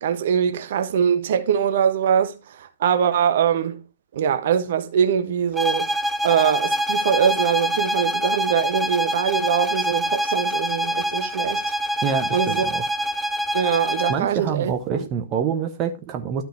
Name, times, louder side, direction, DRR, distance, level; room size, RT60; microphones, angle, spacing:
voice 1, 0.0-3.8 4.1-5.9 6.2-11.6 12.3-12.7 13.5-15.0, right 8 dB, 50° right, 1.1 m, -22 dB
sound 1, 5.6-14.3, equal, 5° right, 0.5 m, -25 dB
voice 2, 12.0-12.8 14.1-16.4, right 7 dB, 25° right, 1.0 m, -26 dB
12.5 x 5.8 x 3.4 m
figure-of-eight pair, 120°, 0 cm